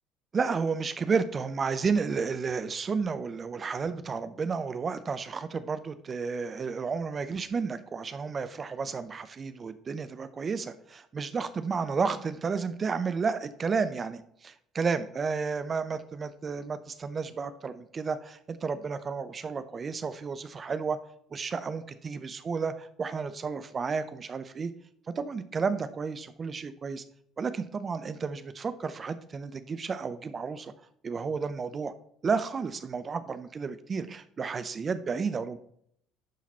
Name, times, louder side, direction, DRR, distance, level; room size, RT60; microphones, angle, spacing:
voice 1, 0.3-21.0 21.3-24.7 25.1-27.0 27.4-30.7 31.0-31.9 32.2-35.6, right 5 dB, 40° right, 11 dB, 0.6 m, -32 dB
10.5 x 4.1 x 4.2 m, 0.69 s
hypercardioid pair, 55°, 0 cm